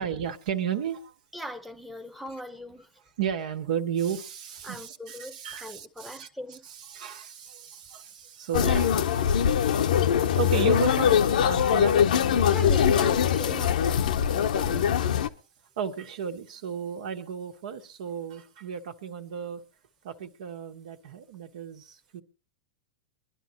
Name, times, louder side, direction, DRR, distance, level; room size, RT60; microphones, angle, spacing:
voice 1, 0.0-1.2 3.2-9.6 10.4-12.0 13.4-13.5 14.6-14.7 15.0-15.1 15.8-19.6 20.0-22.2, right 8 dB, 75° right, 1.6 m, -34 dB
voice 2, 1.3-2.9 4.6-6.7 8.6-9.0 12.5-14.0 14.3-15.0, equal, ahead, 0.9 m, -40 dB
sound 1, 8.5-15.3, left 8 dB, 85° left, 0.9 m, -22 dB
23.5 x 11.0 x 3.0 m
hypercardioid pair, 125°, 4 cm